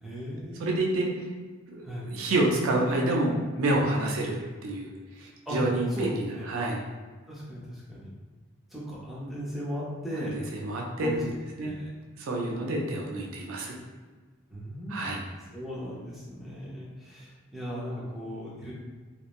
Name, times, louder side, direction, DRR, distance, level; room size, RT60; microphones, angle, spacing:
voice 1, 0.0-1.0 1.8-2.1 5.5-5.6 5.9-6.1 6.3-6.5 7.3-8.1 8.7-10.4 11.0-11.2 11.6-11.9 14.5-15.3 15.5-18.7, equal, ahead, -8 dB, 0.5 m, -37 dB
voice 2, 0.6-1.1 1.7-4.4 4.6-4.9 5.2-6.8 10.3-11.1 11.6-11.7 12.2-13.8 14.9-15.2, right 2 dB, 75° right, -1 dB, 0.4 m, -28 dB
2.9 x 2.1 x 2.4 m, 1.4 s
head